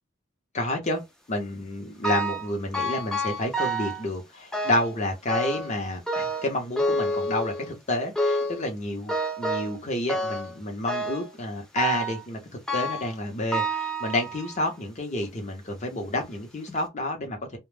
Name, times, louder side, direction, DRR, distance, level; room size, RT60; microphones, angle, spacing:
voice 1, 0.5-1.0 1.3-12.4 12.7-17.6, left 1 dB, 35° left, 0.7 m, -30 dB
sound 1, 2.0-2.5 2.7-4.0 4.5-5.0 5.3-5.8 6.1-7.7 8.2-8.6 9.1-9.8 10.1-10.5 10.9-11.3 11.8-12.2 12.7-13.1 13.5-14.6 15.2-15.3 16.1-16.2 16.7-16.8, right 1 dB, 5° left, 0.4 m, -28 dB
2.2 x 2.0 x 3.2 m
head